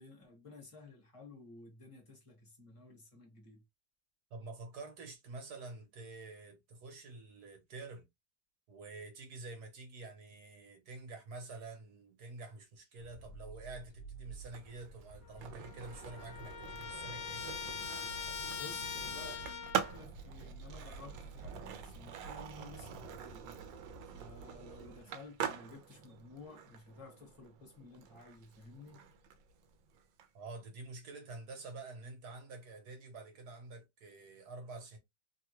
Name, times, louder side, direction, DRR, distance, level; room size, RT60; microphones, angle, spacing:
voice 1, 0.0-3.6 18.6-23.5 24.1-29.0, left 3 dB, 20° left, 1.0 m, -54 dB
voice 2, 4.3-8.1 8.7-17.6 30.3-35.0, right 3 dB, 65° right, 1.5 m, -48 dB
sound 1, 13.0-25.0, right 2 dB, 60° left, 0.7 m, -52 dB
Skateboard, 14.4-30.3, right 9 dB, 85° right, 1.3 m, -45 dB
Trumpet, 15.3-15.4 15.6-20.0, left 7 dB, 80° left, 1.3 m, -42 dB
3.3 x 2.2 x 2.9 m
omnidirectional pair, 2.0 m